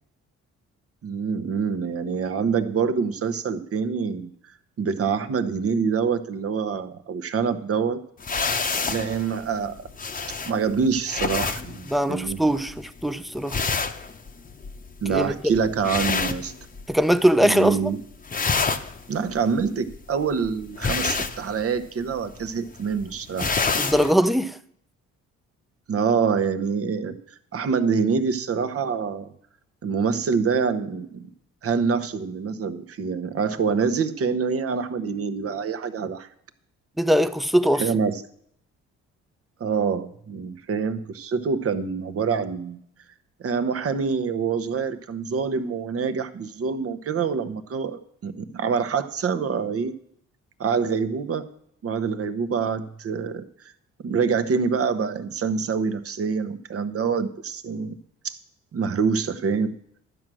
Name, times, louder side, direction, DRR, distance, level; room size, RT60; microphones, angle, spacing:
voice 1, 1.0-4.3 4.8-8.0 8.8-9.9 10.5-12.4 15.0-16.5 17.4-18.0 19.1-23.5 25.9-27.2 27.5-29.3 29.8-31.3 31.6-36.3 37.8-38.2 39.6-42.8 43.4-49.9 50.6-51.4 51.8-53.4 54.0-57.9 58.2-58.4 58.7-59.8, right 5 dB, 50° right, 1.0 m, -26 dB
sound 1, 8.2-17.2 17.4-17.9 18.1-24.1, left 4 dB, 25° left, 0.8 m, -29 dB
voice 2, 11.9-13.6 15.1-15.5 16.9-17.9 23.7-24.6 37.0-37.9, equal, ahead, 0.6 m, -21 dB
12.0 x 7.7 x 6.2 m
cardioid pair, 90°, 30 cm